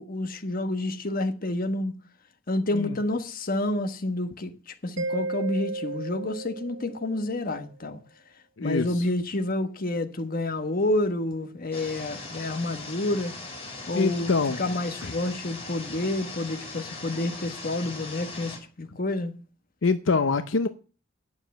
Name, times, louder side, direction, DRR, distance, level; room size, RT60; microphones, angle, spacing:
voice 1, 0.0-1.9 2.5-4.5 4.8-8.0 8.6-13.3 13.9-19.3, left 1 dB, 50° left, 1.3 m, -29 dB
Mallet percussion, 5.0-7.5, right 3 dB, 85° right, 0.8 m, -34 dB
voice 2, 8.6-9.1 13.9-14.6 15.0-15.1 19.8-20.7, left 4 dB, 80° left, 0.7 m, -25 dB
sound 1, 11.7-18.6, left 3 dB, 30° left, 5.2 m, -39 dB
9.4 x 7.2 x 7.4 m
head